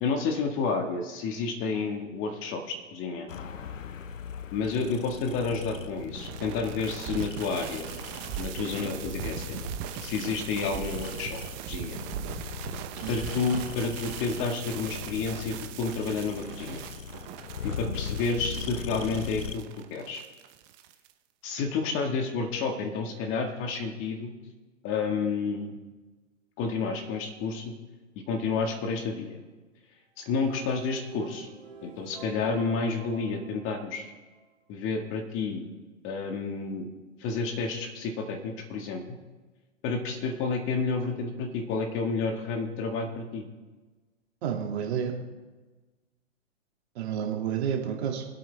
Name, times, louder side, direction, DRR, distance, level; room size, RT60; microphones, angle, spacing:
voice 1, 0.0-3.3 4.5-7.9 8.4-9.6 10.0-11.4 11.7-12.0 13.1-16.8 17.6-19.6 19.9-20.2 21.4-24.3 24.8-25.7 26.6-27.7 28.3-29.4 30.2-31.5 31.8-34.1 34.7-35.7 36.0-36.9 37.2-39.2 39.8-43.4, left 4 dB, 30° left, 4 dB, 1.8 m, -30 dB
sound 1, 3.3-19.6, left 7 dB, 85° left, 0.8 m, -40 dB
sound 2, 5.8-21.1, right 11 dB, 30° right, 0.9 m, -40 dB
sound 3, 30.2-34.4, right 4 dB, 90° right, 3.8 m, -49 dB
voice 2, 44.4-45.2 47.0-48.3, right 8 dB, 55° right, 1 dB, 2.6 m, -30 dB
25.0 x 8.5 x 3.5 m, 1.2 s
hypercardioid pair, 130°, 38 cm